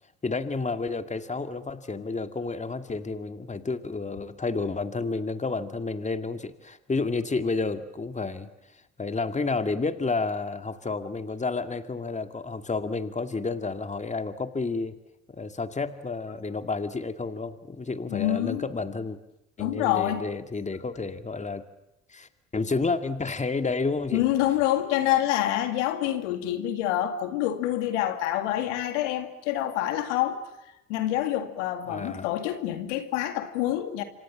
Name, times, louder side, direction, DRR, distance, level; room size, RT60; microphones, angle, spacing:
voice 1, 0.2-8.5 9.0-14.9 15.3-19.2 19.6-21.6 22.1-24.2 31.9-32.3, left 3 dB, 20° left, 9 dB, 2.2 m, -30 dB
voice 2, 18.1-18.6 19.6-20.2 24.1-34.0, left 13 dB, 85° left, 8 dB, 2.3 m, -27 dB
27.0 x 25.0 x 7.4 m, 0.88 s
hypercardioid pair, 70°, 35 cm